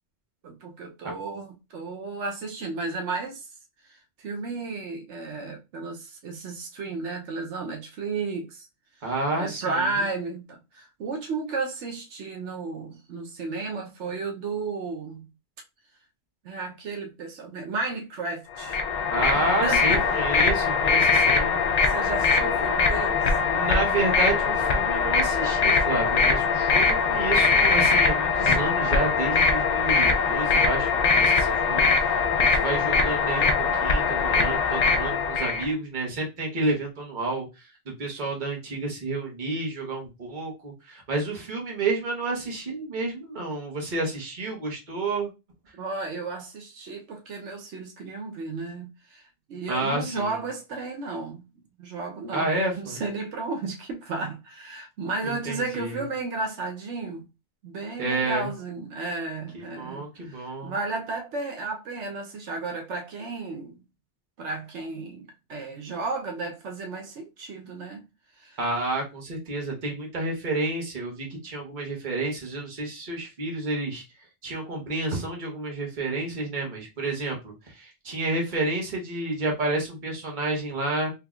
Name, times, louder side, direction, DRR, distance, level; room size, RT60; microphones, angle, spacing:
voice 1, 0.4-3.5 3.8-8.7 9.3-15.3 16.4-18.8 19.3-20.0 21.8-23.3 45.8-51.4 51.8-57.2 57.6-63.8 64.4-68.0 68.4-68.6, right 3 dB, 90° right, 1.1 m, -33 dB
voice 2, 9.0-10.0 19.1-21.6 23.5-45.3 49.7-50.3 52.3-53.0 55.2-56.0 58.0-58.5 59.5-60.7 68.6-74.0 74.4-81.1, right 2 dB, 45° right, 1.2 m, -30 dB
sound 1, 18.6-35.7, left 4 dB, 60° left, 0.4 m, -22 dB
3.6 x 2.9 x 2.3 m
omnidirectional pair, 1.2 m